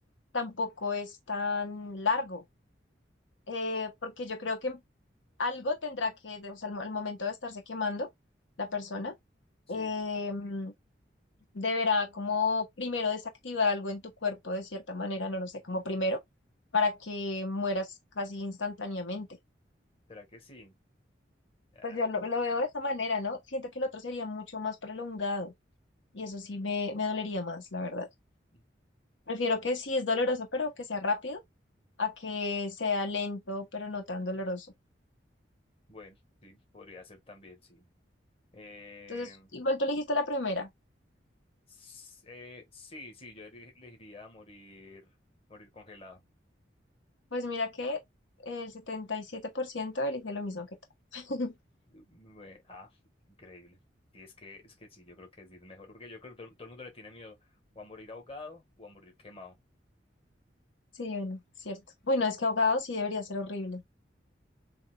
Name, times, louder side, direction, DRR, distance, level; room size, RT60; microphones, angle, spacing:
voice 1, 0.3-2.4 3.5-4.8 5.4-8.1 8.6-9.1 9.7-10.7 11.5-16.2 16.7-17.9 18.2-19.3 21.8-25.5 26.1-28.1 29.3-31.4 32.0-34.7 39.1-40.7 47.3-48.0 48.4-50.7 51.1-51.5 61.0-61.8 62.1-63.8, left 3 dB, 85° left, 1.3 m, -32 dB
voice 2, 20.1-20.8 21.7-22.0 28.5-28.6 35.9-37.9 38.5-39.5 41.7-45.2 45.5-46.2 51.9-53.0 53.3-53.8 54.1-59.6, left 3 dB, 30° left, 1.8 m, -49 dB
7.1 x 2.9 x 2.4 m
head